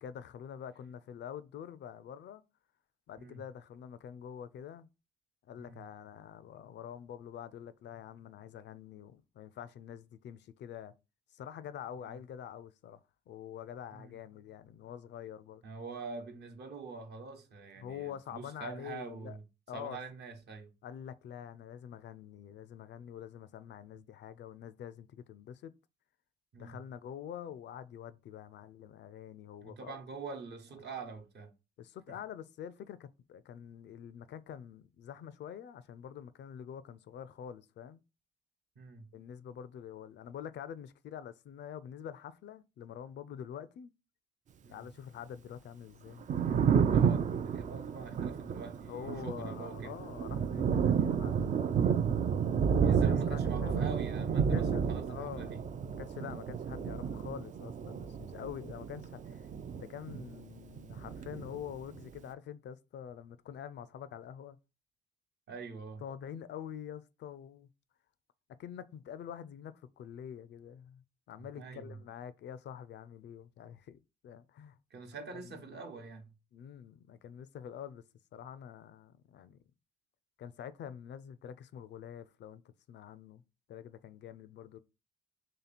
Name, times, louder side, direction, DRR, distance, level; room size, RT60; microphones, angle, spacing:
voice 1, 0.0-2.4 3.1-4.9 5.5-10.9 11.3-13.0 13.3-15.6 17.8-19.4 19.7-20.0 20.8-25.7 26.6-30.0 31.8-38.0 39.1-43.9 44.7-46.3 48.9-51.7 52.9-53.9 54.5-55.5 56.0-59.5 59.8-64.6 66.0-67.7 68.6-74.8 75.4-75.5 76.5-78.0 78.3-79.6 80.4-83.4 83.7-84.8, left 9 dB, 60° left, 0.4 m, -46 dB
voice 2, 15.6-19.4 19.7-20.7 26.5-26.8 29.6-31.5 38.8-39.1 44.6-44.9 46.9-50.0 51.8-52.0 52.8-55.6 65.5-66.0 71.6-72.0 74.9-76.3, right 4 dB, 60° right, 0.9 m, -45 dB
Thunder, 46.1-60.5 60.8-62.0, right 7 dB, 40° right, 0.4 m, -31 dB
3.2 x 2.9 x 4.1 m
cardioid pair, 90°, 20 cm